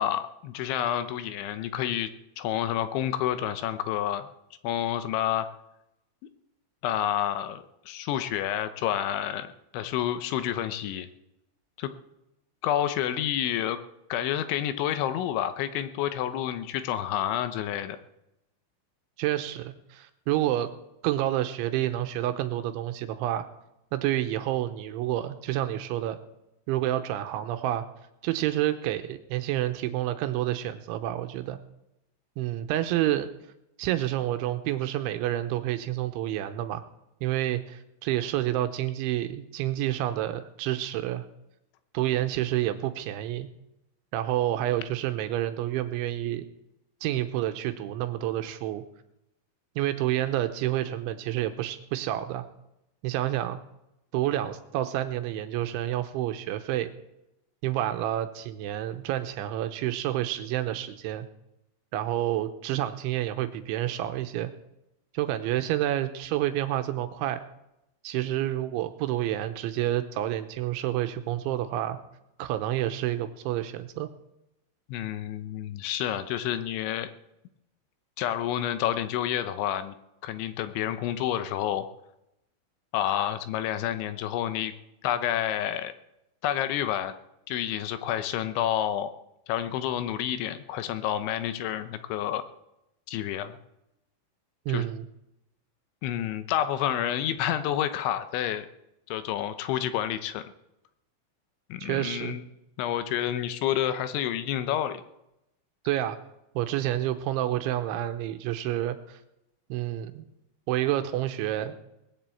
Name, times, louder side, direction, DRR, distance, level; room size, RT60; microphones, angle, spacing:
voice 1, 0.0-2.1 2.4-4.3 4.6-5.5 6.8-11.1 11.8-11.9 12.6-13.8 14.1-18.0 74.9-77.1 78.2-80.0 80.2-81.9 82.9-84.7 85.0-85.9 86.4-87.2 87.5-89.1 89.5-92.4 93.1-93.6 94.7-94.9 96.0-98.7 99.1-100.4 101.7-102.4 102.8-105.0, left 11 dB, 80° left, 11 dB, 3.1 m, -29 dB
voice 2, 19.2-20.7 21.0-23.5 23.9-26.2 26.7-27.8 28.2-31.6 32.4-33.3 33.8-36.9 37.2-41.3 41.9-43.5 44.1-46.5 47.0-48.8 49.8-52.5 53.0-53.6 54.1-56.9 57.6-61.3 61.9-64.5 65.1-67.4 68.0-72.0 72.4-74.1 94.7-95.1 101.8-102.4 105.8-106.2 106.6-109.2 109.7-110.2 110.7-111.7, right 13 dB, 80° right, 9 dB, 3.2 m, -29 dB
19.5 x 7.4 x 8.4 m, 0.85 s
omnidirectional pair, 5.5 m